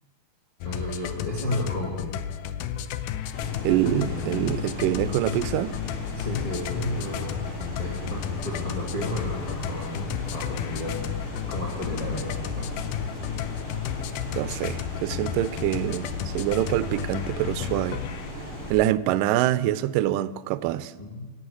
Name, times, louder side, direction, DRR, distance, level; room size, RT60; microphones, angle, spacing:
sound 1, 0.6-18.5, left 10 dB, 80° left, 2.0 m, -33 dB
voice 1, 0.6-2.1 3.7-4.3 6.1-7.5 7.8-11.0 11.5-12.7 21.0-21.3, left 1 dB, 15° left, 1.5 m, -33 dB
sound 2, 3.3-18.7, equal, 65° left, 5.4 m, -37 dB
voice 2, 3.6-5.7 14.3-18.0 18.7-20.9, right 14 dB, 80° right, 2.1 m, -25 dB
17.0 x 7.8 x 8.4 m
omnidirectional pair, 4.1 m